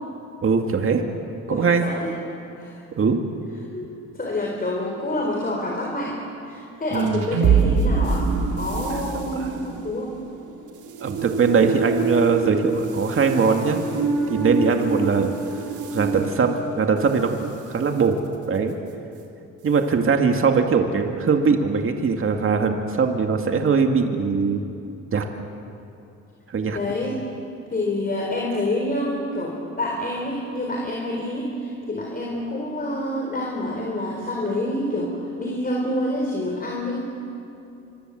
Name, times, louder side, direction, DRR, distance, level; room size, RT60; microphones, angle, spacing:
voice 1, 0.4-1.0 1.5-1.9 3.0-3.2 6.9-7.3 9.4-9.5 11.0-13.8 14.3-15.3 15.9-18.2 18.5-18.7 19.6-24.6 25.1-25.2 26.5-26.8, right 5 dB, 45° right, 4 dB, 2.3 m, -21 dB
voice 2, 1.5-2.1 2.6-2.8 3.7-6.2 6.5-10.1 26.7-27.2 27.7-37.0, left 1 dB, 30° left, -1 dB, 4.6 m, -27 dB
sound 1, 6.9-17.4, right 4 dB, 80° right, 3.5 m, -25 dB
25.5 x 24.0 x 7.8 m, 2.7 s
cardioid pair, 90°, 30 cm